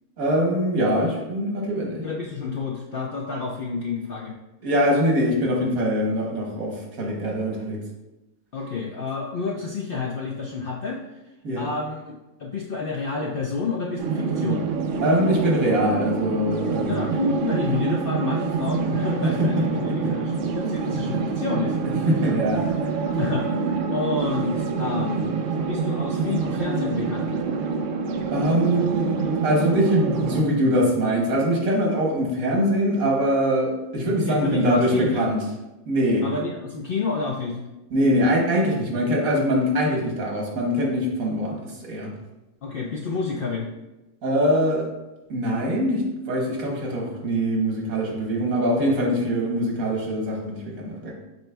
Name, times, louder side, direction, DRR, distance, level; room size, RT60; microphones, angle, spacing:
voice 1, 0.2-2.0 4.6-7.8 11.4-11.7 15.0-16.9 19.2-20.1 22.1-22.6 28.3-35.4 35.8-36.2 37.9-41.6 41.9-42.1 44.2-44.9 45.3-51.1, equal, 85° right, -2 dB, 1.5 m, -23 dB
voice 2, 2.0-4.3 8.5-11.0 11.6-12.0 12.4-14.6 16.8-22.1 23.1-27.3 34.2-35.3 36.2-37.6 42.6-43.7, left 4 dB, 70° left, -1 dB, 0.5 m, -29 dB
sound 1, 14.0-30.4, right 5 dB, 70° right, 0.8 m, -26 dB
7.8 x 3.0 x 2.2 m, 1.0 s
omnidirectional pair, 1.4 m